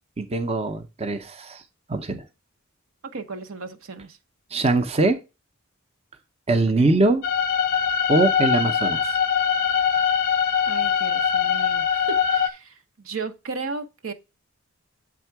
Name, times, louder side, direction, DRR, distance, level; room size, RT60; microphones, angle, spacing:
voice 1, 0.2-1.6 1.9-2.2 4.5-5.2 6.5-7.2 8.1-9.1, right 2 dB, 30° right, 0.6 m, -22 dB
voice 2, 3.0-4.2 6.7-7.0 10.7-14.1, right 4 dB, 75° right, 0.7 m, -35 dB
sound 1, 7.2-12.5, left 7 dB, 45° left, 0.5 m, -22 dB
7.8 x 3.6 x 4.5 m
head